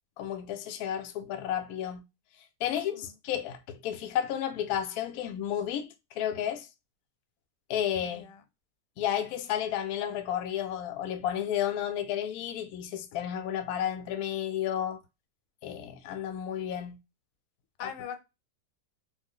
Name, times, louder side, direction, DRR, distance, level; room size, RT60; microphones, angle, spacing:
voice 1, 0.2-2.0 2.6-6.7 7.7-8.3 9.0-15.0 15.6-17.0, left 10 dB, 70° left, 0.9 m, -32 dB
voice 2, 8.0-8.4 17.8-18.2, left 8 dB, 90° left, 1.3 m, -41 dB
3.1 x 2.0 x 3.6 m
omnidirectional pair, 1.8 m